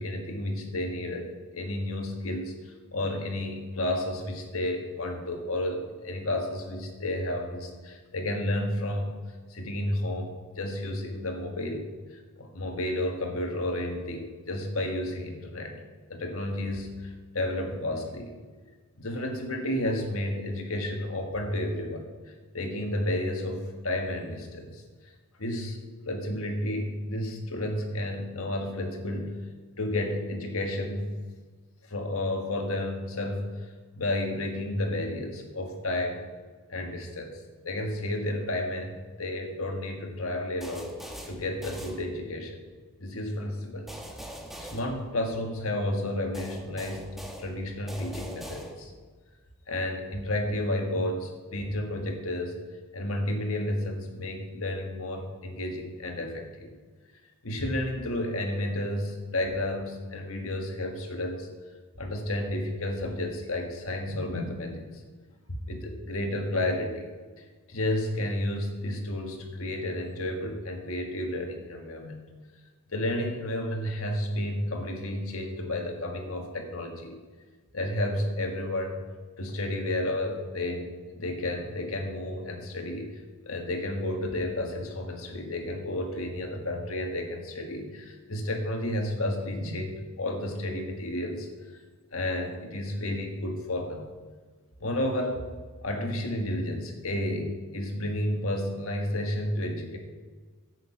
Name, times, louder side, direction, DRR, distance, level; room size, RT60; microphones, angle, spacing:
voice 1, 0.0-9.1 9.5-15.8 16.1-18.4 19.0-25.1 25.4-29.4 29.8-31.1 31.9-33.7 33.9-36.2 36.7-37.4 37.6-40.9 41.3-42.6 43.0-43.9 44.6-48.9 49.7-52.6 52.9-56.7 57.4-61.5 62.0-65.0 65.5-67.1 67.7-72.2 72.9-77.2 77.7-79.0 79.4-91.5 92.1-94.1 94.8-95.4 95.8-100.0, left 1 dB, 80° left, 3 dB, 1.7 m, -31 dB
sound 1, 40.6-42.5 43.9-45.6 46.3-49.1, equal, ahead, 1.0 m, -43 dB
10.5 x 7.9 x 5.9 m, 1.4 s
head